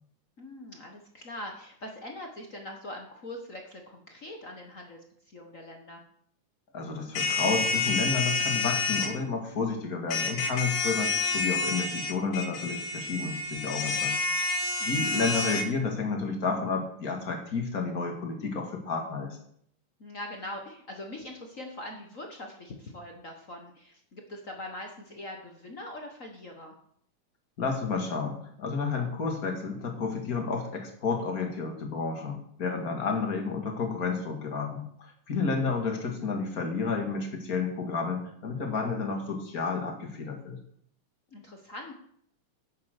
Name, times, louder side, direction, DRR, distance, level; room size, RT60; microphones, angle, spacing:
voice 1, 0.4-6.0 14.8-15.1 20.0-26.7 41.3-41.9, left 1 dB, 60° left, 2 dB, 0.8 m, -42 dB
voice 2, 6.7-14.5 14.9-19.4 27.6-40.6, left 4 dB, 30° left, 2 dB, 2.1 m, -31 dB
sound 1, 7.1-9.1 10.1-15.6, left 3 dB, 75° left, 3.3 m, -29 dB
10.5 x 9.0 x 6.6 m, 0.66 s
omnidirectional pair, 3.7 m